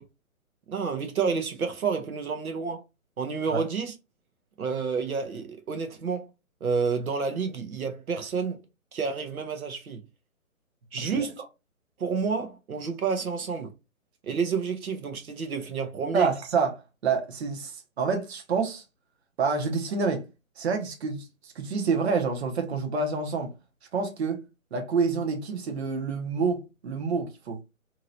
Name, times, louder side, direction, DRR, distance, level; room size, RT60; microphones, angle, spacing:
voice 1, 0.7-2.8 3.2-3.9 4.6-6.3 6.6-8.6 8.9-10.0 10.9-11.4 12.0-13.7 14.2-16.3, right 5 dB, 90° right, 0.9 m, -29 dB
voice 2, 16.1-18.8 19.4-20.2 20.6-23.5 23.9-24.4 24.7-27.6, right 5 dB, 50° right, 0.9 m, -28 dB
2.9 x 2.8 x 2.6 m
hypercardioid pair, 150°, 41 cm